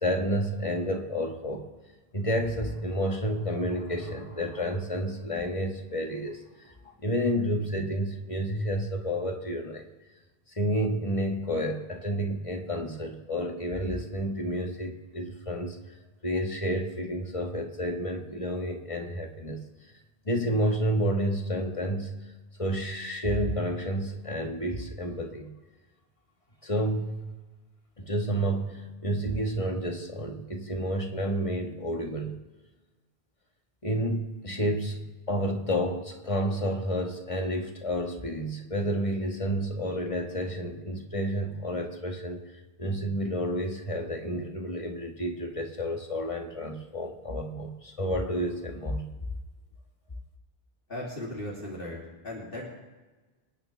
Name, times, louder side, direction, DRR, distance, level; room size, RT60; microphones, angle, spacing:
voice 1, 0.0-1.7 2.1-9.8 10.5-15.8 16.2-19.6 20.2-22.1 22.6-25.5 26.6-27.3 28.0-32.3 33.8-42.4 42.8-49.1, equal, 35° left, 3 dB, 1.6 m, -30 dB
voice 2, 50.9-52.6, left 1 dB, 60° left, -6 dB, 3.0 m, -37 dB
27.5 x 9.6 x 3.4 m, 1.2 s
omnidirectional pair, 1.0 m